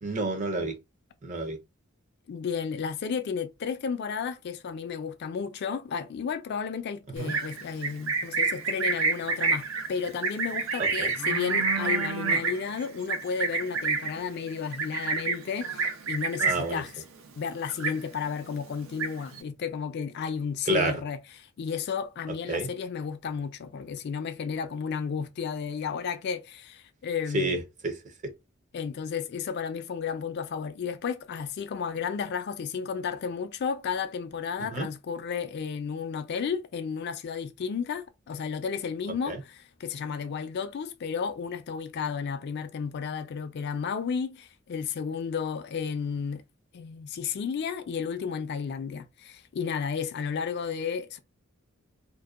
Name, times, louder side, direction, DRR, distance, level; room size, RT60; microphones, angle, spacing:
voice 1, 0.0-0.8 1.2-1.6 7.2-7.3 10.8-11.1 16.4-16.8 20.7-21.0 22.5-22.7 27.3-27.9 28.2-28.3 34.7-34.9 39.3-39.4, right 2 dB, 40° right, 0.5 m, -29 dB
voice 2, 2.3-17.0 17.4-27.6 28.7-46.4 46.7-51.2, left 6 dB, 55° left, 0.3 m, -33 dB
Livestock farm animals working animals, 7.2-16.8 17.1-17.4 17.7-18.4 18.7-19.4, right 4 dB, 85° right, 0.6 m, -28 dB
2.6 x 2.1 x 2.3 m
head